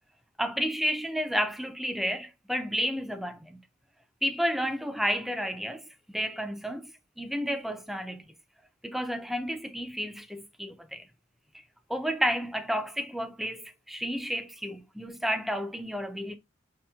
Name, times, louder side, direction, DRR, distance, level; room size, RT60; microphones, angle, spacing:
voice 1, 0.4-3.6 4.2-5.8 6.1-6.9 7.2-8.2 8.8-11.1 11.9-16.4, equal, ahead, 0.4 m, -31 dB
4.9 x 2.8 x 2.3 m
head